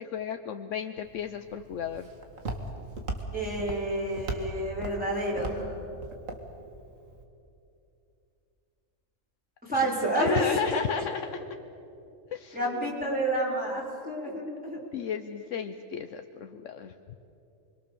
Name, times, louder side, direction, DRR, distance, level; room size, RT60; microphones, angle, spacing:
voice 1, 0.0-2.1 10.2-11.5 12.3-12.9 14.8-16.9, left 8 dB, 70° left, 8 dB, 1.1 m, -34 dB
Walk footsteps, 1.0-7.2, right 2 dB, 75° right, 2.4 m, -39 dB
voice 2, 3.3-5.7 9.6-10.8 12.5-14.8, right 1 dB, 5° right, -5 dB, 5.4 m, -29 dB
29.0 x 22.5 x 7.0 m, 2.8 s
omnidirectional pair, 1.4 m